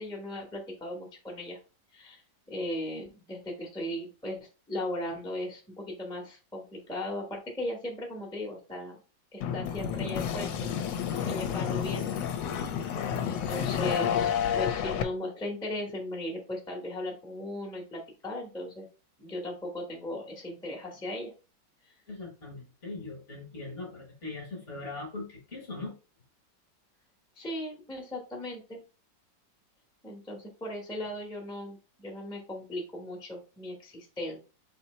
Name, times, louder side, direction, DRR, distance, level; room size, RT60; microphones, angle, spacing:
voice 1, 0.0-1.6 1.9-2.2 2.5-4.4 4.7-9.0 9.3-12.1 13.2-18.9 19.2-21.3 27.4-28.8 30.0-34.4, left 1 dB, 5° left, 0 dB, 0.8 m, -37 dB
sound 1, 9.4-15.0, left 8 dB, 80° left, 1.3 m, -30 dB
voice 2, 22.1-25.9, left 3 dB, 45° left, 1 dB, 1.4 m, -40 dB
4.2 x 2.8 x 4.2 m, 0.33 s
omnidirectional pair, 2.0 m